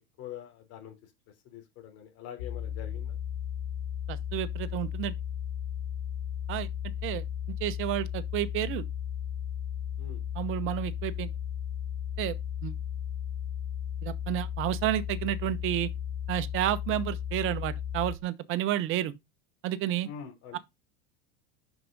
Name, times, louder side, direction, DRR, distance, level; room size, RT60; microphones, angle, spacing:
voice 1, 0.2-0.9 1.5-3.2 10.0-10.2 20.0-20.6, left 9 dB, 50° left, 3.5 m, -44 dB
sound 1, 2.4-18.2, left 9 dB, 75° left, 1.7 m, -35 dB
voice 2, 4.1-5.1 6.5-6.7 7.0-7.2 7.6-8.8 10.3-11.3 12.2-12.3 12.6-12.7 14.0-15.9 16.3-19.1 19.6-20.1, right 13 dB, 45° right, 1.0 m, -30 dB
6.0 x 5.9 x 5.2 m
supercardioid pair, 125°, 30 cm